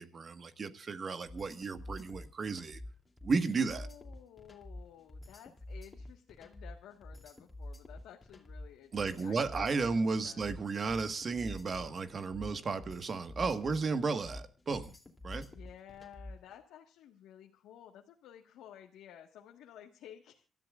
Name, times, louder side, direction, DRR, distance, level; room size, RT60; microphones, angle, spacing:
voice 1, 0.0-2.8 3.2-3.9 8.9-14.9 15.2-15.5, right 4 dB, 45° right, 1.6 m, -34 dB
sound 1, 1.3-16.5, left 1 dB, 25° left, 2.9 m, -47 dB
voice 2, 3.6-10.5 15.3-20.4, left 10 dB, 90° left, 1.6 m, -54 dB
27.5 x 13.5 x 2.5 m
cardioid pair, 90°, 0 cm